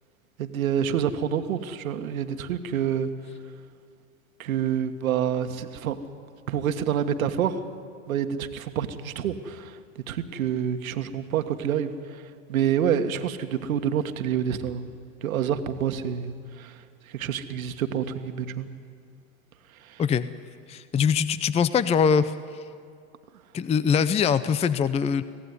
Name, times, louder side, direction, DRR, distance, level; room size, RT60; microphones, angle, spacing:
voice 1, 0.4-3.1 4.4-6.0 6.5-7.6 8.1-9.8 10.1-14.9 15.2-18.7 19.8-20.0, right 9 dB, 80° right, 8 dB, 1.8 m, -28 dB
voice 2, 20.7-22.3 23.5-25.2, left 7 dB, 15° left, 15 dB, 0.6 m, -22 dB
25.0 x 17.0 x 9.8 m, 2.3 s
hypercardioid pair, 105°, 42 cm